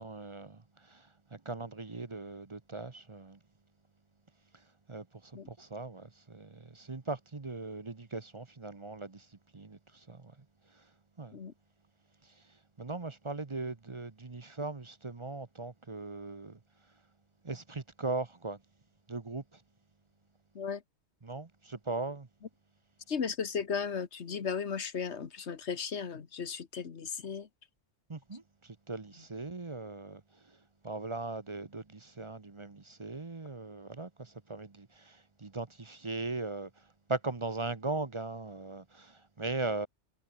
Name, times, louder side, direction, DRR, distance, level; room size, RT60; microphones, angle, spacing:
voice 1, 0.0-3.4 4.5-10.4 10.7-10.9 11.2-11.4 12.2-16.6 17.4-18.6 19.1-19.6 21.2-22.3 28.1-39.9, right 3 dB, 25° right, 1.0 m, -39 dB
voice 2, 23.1-27.5, left 6 dB, 65° left, 1.6 m, -35 dB
omnidirectional pair, 1.2 m